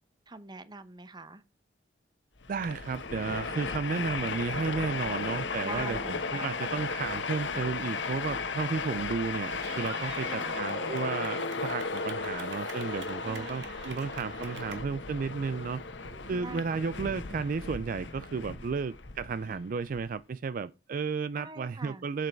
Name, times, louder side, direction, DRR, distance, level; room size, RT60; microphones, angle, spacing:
voice 1, 0.3-1.4 5.5-6.5 10.3-10.7 13.2-13.8 16.0-16.8 21.4-22.0, right 2 dB, 25° right, 0.8 m, -45 dB
Train, 2.4-20.0, left 4 dB, 80° left, 1.2 m, -35 dB
voice 2, 2.5-15.8 16.3-22.3, right 5 dB, 50° right, 0.3 m, -33 dB
Clapping / Cheering, 9.6-14.8, right 4 dB, 75° right, 2.0 m, -46 dB
7.7 x 7.6 x 4.5 m
head